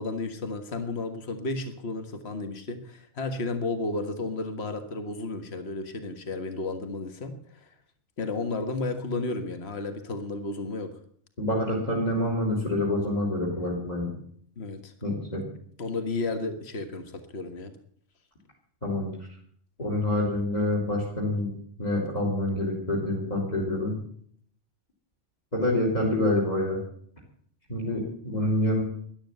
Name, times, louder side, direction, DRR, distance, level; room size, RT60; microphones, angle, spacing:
voice 1, 0.0-7.7 8.2-10.9 14.6-14.9 15.8-17.7, left 3 dB, 60° left, 8 dB, 1.8 m, -33 dB
voice 2, 11.4-14.1 15.0-15.5 18.8-19.1 19.8-21.5 21.8-24.0 25.5-26.8 27.7-28.8, left 1 dB, 35° left, -1 dB, 3.8 m, -27 dB
13.0 x 11.5 x 8.0 m, 0.62 s
omnidirectional pair, 1.2 m